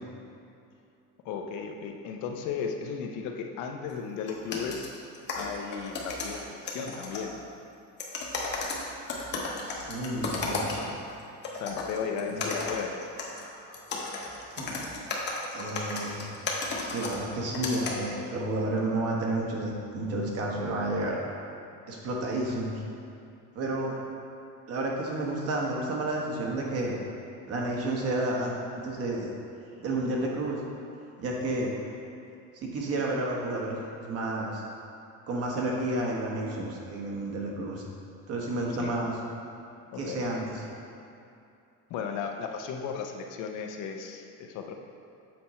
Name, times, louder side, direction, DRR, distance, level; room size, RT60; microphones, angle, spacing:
voice 1, 1.2-4.8 5.4-7.3 11.6-12.9 38.8-38.9 39.9-40.2 41.9-44.7, left 6 dB, 65° left, 3 dB, 0.7 m, -35 dB
sound 1, 3.9-4.0 4.3-7.3 8.0-11.1 11.4-17.9, left 3 dB, 35° left, 0.9 m, -34 dB
voice 2, 9.6-11.0 12.3-12.5 14.5-14.7 15.5-16.3 16.8-21.2 21.9-22.8 23.5-24.0 24.7-27.0 27.5-28.6 28.8-29.3 29.8-30.6 31.2-31.7 32.5-34.6 35.3-37.8 38.3-39.1 40.0-40.6, right 2 dB, 45° right, -2 dB, 1.3 m, -31 dB
7.7 x 4.3 x 4.3 m, 2.6 s
cardioid pair, 155°, 32 cm